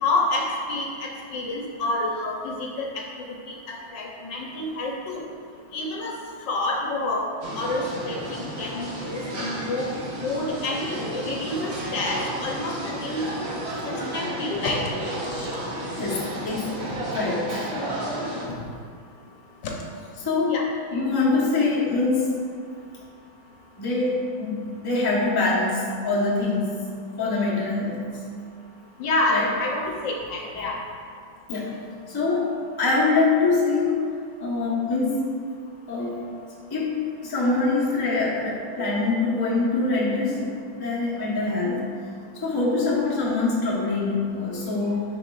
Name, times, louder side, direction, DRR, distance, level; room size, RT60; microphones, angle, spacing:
voice 1, 0.0-3.0 3.7-5.2 5.7-6.1 6.4-7.3 7.6-9.9 10.2-13.3 13.9-14.8 19.6-19.7 20.5-20.6 29.0-30.7, left 2 dB, 70° left, -1 dB, 1.4 m, -28 dB
sound 1, 7.4-18.5, right 1 dB, 45° right, 0.9 m, -32 dB
voice 2, 16.0-16.7 17.1-17.7 20.2-20.6 20.9-22.3 23.8-26.8 27.2-28.0 29.3-29.5 31.5-31.8 32.1-34.1 34.4-35.2 35.9-36.2 36.7-41.8 42.3-45.2, left 3 dB, 20° left, -6 dB, 0.7 m, -24 dB
10.0 x 4.8 x 2.4 m, 2.2 s
omnidirectional pair, 2.2 m